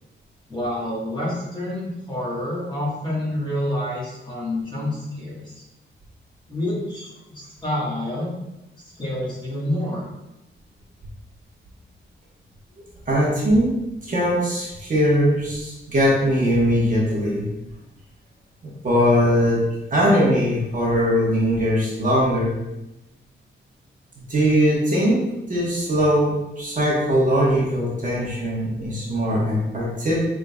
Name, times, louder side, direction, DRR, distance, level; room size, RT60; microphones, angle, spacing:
voice 1, 0.5-5.4 6.5-8.3 9.0-10.1, left 1 dB, 20° left, -6 dB, 1.5 m, -28 dB
voice 2, 13.1-13.7 14.0-17.5 18.6-19.6 19.9-22.5 24.3-25.2 25.5-30.2, equal, 40° right, -5 dB, 1.2 m, -20 dB
5.0 x 3.7 x 2.3 m, 0.93 s
wide cardioid pair, 130°, 20 cm